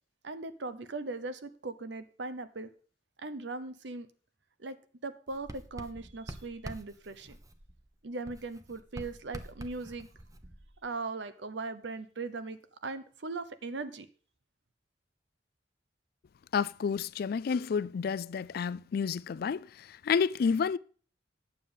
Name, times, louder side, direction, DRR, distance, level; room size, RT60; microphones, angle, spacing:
voice 1, 0.2-2.7 3.2-4.1 4.6-4.8 5.0-7.4 8.0-10.1 10.8-14.1, right 3 dB, 75° right, 0.8 m, -39 dB
Writing, 5.3-7.9 8.3-11.0, right 1 dB, 20° right, 0.7 m, -47 dB
voice 2, 16.5-20.8, left 6 dB, 55° left, 0.3 m, -30 dB
9.2 x 7.1 x 5.3 m
head